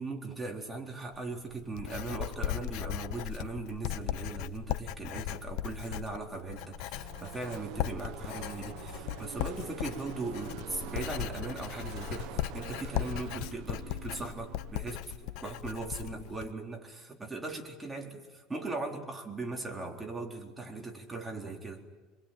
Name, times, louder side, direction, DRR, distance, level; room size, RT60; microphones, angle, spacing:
voice 1, 0.0-21.8, right 3 dB, 10° right, 0 dB, 3.9 m, -39 dB
Writing, 1.1-16.5, left 13 dB, 65° left, 0.9 m, -38 dB
Car passing by / Race car auto racing, 6.1-16.2, right 14 dB, 65° right, 1.0 m, -47 dB
27.5 x 22.5 x 9.2 m, 1.3 s
cardioid pair, 150°, 0 cm